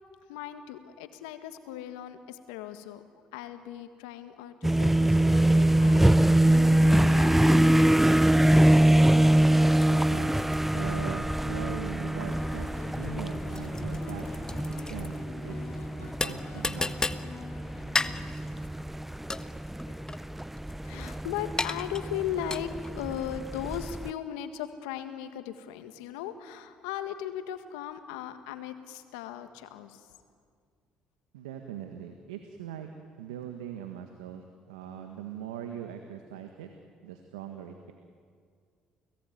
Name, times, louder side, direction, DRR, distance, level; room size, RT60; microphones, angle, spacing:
voice 1, 0.3-3.0 3.3-8.3 19.9-20.0 20.8-30.1, left 10 dB, 85° left, 9 dB, 1.7 m, -38 dB
sound 1, 4.6-24.1, right 1 dB, 5° right, 0.6 m, -24 dB
sound 2, 8.0-23.0, left 3 dB, 20° left, 1.3 m, -37 dB
voice 2, 9.9-12.7 13.0-14.2 14.7-15.2 15.4-15.6 16.0-17.2 31.3-32.9 33.2-36.7 37.0-37.9, right 9 dB, 90° right, 5 dB, 1.6 m, -41 dB
sound 3, 12.2-18.9, left 5 dB, 50° left, 2.5 m, -46 dB
29.5 x 18.5 x 9.4 m, 2.1 s
hypercardioid pair, 60°, 3 cm